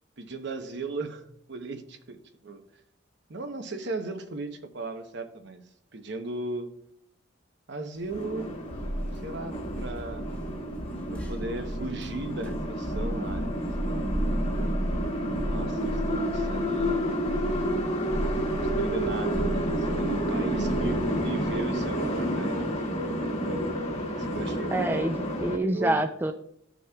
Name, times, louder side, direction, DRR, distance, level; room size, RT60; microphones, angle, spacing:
voice 1, 0.2-1.2 1.5-2.6 3.3-5.6 5.9-6.7 7.7-8.5 9.2-10.4 11.1-14.2 15.5-17.1 18.6-22.7 24.2-24.8 25.6-26.0, right 2 dB, 60° right, 6 dB, 0.9 m, -37 dB
sound 1, 8.1-25.6, equal, 35° left, 1.1 m, -30 dB
sound 2, 8.1-21.6, equal, 5° left, 1.0 m, -34 dB
voice 2, 24.7-26.3, right 1 dB, 10° right, 6 dB, 0.4 m, -27 dB
15.0 x 6.1 x 2.3 m, 0.71 s
head